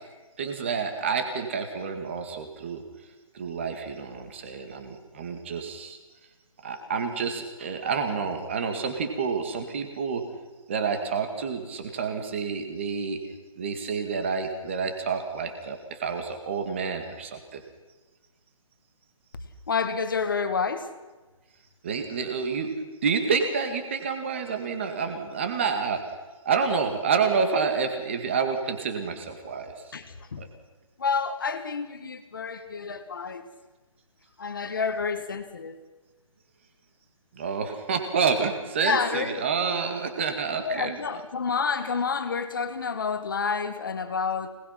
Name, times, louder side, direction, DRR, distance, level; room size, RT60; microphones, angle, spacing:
voice 1, 0.4-2.8 3.3-6.0 6.6-10.2 10.7-13.2 13.6-17.6 21.8-22.7 23.0-26.2 26.5-29.7 30.4-30.5 37.3-41.0, right 5 dB, 20° right, 6 dB, 2.0 m, -28 dB
voice 2, 19.7-20.9 29.9-30.4 31.0-33.5 34.4-35.8 38.8-39.4 40.6-44.5, left 5 dB, 35° left, 9 dB, 1.8 m, -29 dB
26.0 x 19.5 x 5.9 m, 1.2 s
hypercardioid pair, 180°, 18 cm